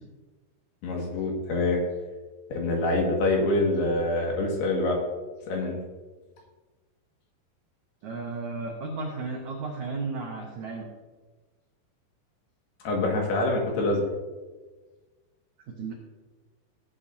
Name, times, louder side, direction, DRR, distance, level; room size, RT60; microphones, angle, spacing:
voice 1, 0.8-1.8 2.5-5.0 5.5-5.7 12.9-14.0, left 2 dB, 70° left, 0 dB, 3.7 m, -25 dB
voice 2, 8.0-10.8 15.7-15.9, right 3 dB, 90° right, 0 dB, 1.6 m, -34 dB
16.5 x 8.7 x 2.7 m, 1.3 s
omnidirectional pair, 5.1 m